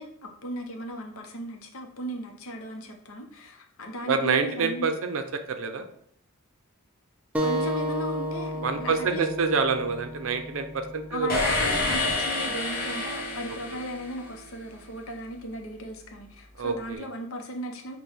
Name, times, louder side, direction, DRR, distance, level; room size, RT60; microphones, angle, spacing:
voice 1, 0.0-4.9 7.4-9.3 11.1-18.0, equal, 70° left, 3 dB, 0.7 m, -36 dB
voice 2, 4.1-5.2 5.5-5.9 8.6-11.7 16.6-17.1, right 5 dB, 65° right, 8 dB, 0.5 m, -27 dB
sound 1, 7.3-12.5, equal, 5° right, 0.3 m, -33 dB
sound 2, 11.3-14.5, left 2 dB, 40° left, 1.0 m, -28 dB
5.9 x 2.2 x 3.4 m, 0.66 s
head